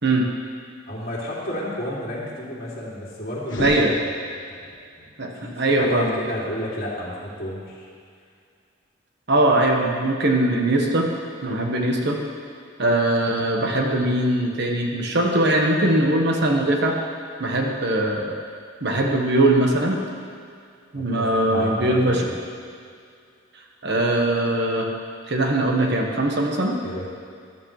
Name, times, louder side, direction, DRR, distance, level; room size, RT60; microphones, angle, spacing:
voice 1, 0.9-3.9 4.5-4.7 4.9-5.1 5.3-7.8 20.9-22.3 26.8-27.1, left 1 dB, 50° left, -6 dB, 2.9 m, -31 dB
sound 1, 3.4-4.7, left 1 dB, 70° left, 1.4 m, -33 dB
voice 2, 3.6-3.9 5.2-5.3 5.6-6.1 9.3-11.1 11.4-12.2 12.8-17.0 17.4-18.4 18.8-20.0 20.9-22.3 23.8-24.9 25.3-26.8, right 1 dB, 60° right, 1 dB, 1.3 m, -21 dB
13.5 x 12.5 x 3.3 m, 2.3 s
head